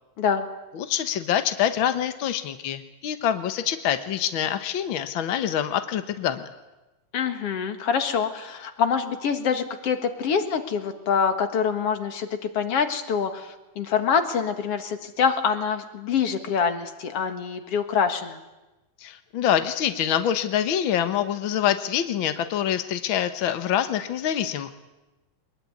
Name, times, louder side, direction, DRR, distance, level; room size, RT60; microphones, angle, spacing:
voice 1, 0.7-6.5 19.0-24.7, left 10 dB, 75° left, 10 dB, 1.1 m, -25 dB
voice 2, 7.1-18.4, left 6 dB, 50° left, 8 dB, 2.4 m, -25 dB
23.5 x 20.5 x 9.6 m, 1.1 s
omnidirectional pair, 4.0 m